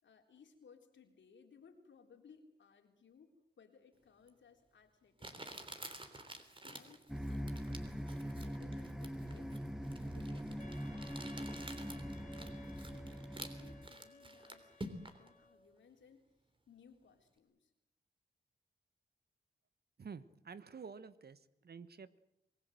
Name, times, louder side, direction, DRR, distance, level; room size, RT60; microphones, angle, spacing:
voice 1, 0.0-5.5 6.6-11.2 12.1-16.3 16.7-17.7, left 6 dB, 85° left, 4 dB, 3.7 m, -63 dB
Crumpling crinkling, 4.3-4.4 5.2-15.3, right 1 dB, 30° right, 3.4 m, -50 dB
sound 1, 7.1-13.9, equal, ahead, 1.2 m, -42 dB
Wind instrument woodwind instrument, 10.6-15.6, equal, 40° left, 2.2 m, -58 dB
voice 2, 20.0-22.2, right 5 dB, 60° right, 14 dB, 1.3 m, -50 dB
27.0 x 20.0 x 7.8 m, 0.81 s
cardioid pair, 80°, 19 cm